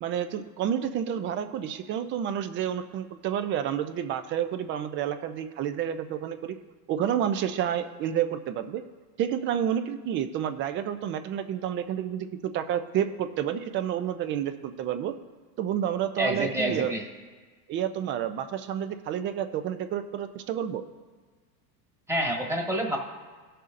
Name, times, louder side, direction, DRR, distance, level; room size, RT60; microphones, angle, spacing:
voice 1, 0.0-6.6 6.9-8.8 9.2-15.1 15.6-16.9 17.7-20.8, right 9 dB, 25° right, 10 dB, 0.4 m, -29 dB
voice 2, 16.2-17.0 22.1-23.0, right 1 dB, 5° right, 1 dB, 1.4 m, -27 dB
17.0 x 6.7 x 2.5 m, 1.4 s
supercardioid pair, 120°, 50 cm